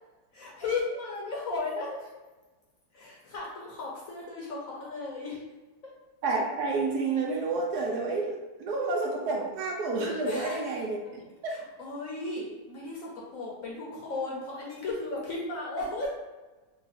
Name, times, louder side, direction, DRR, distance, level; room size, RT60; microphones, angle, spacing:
voice 1, 0.3-2.1 2.9-5.4 5.8-5.9 10.2-10.8 11.5-16.1, left 3 dB, 60° left, -3 dB, 1.0 m, -35 dB
voice 2, 6.2-11.5, right 3 dB, 70° right, -1 dB, 1.1 m, -30 dB
3.2 x 2.3 x 4.1 m, 1.2 s
omnidirectional pair, 1.9 m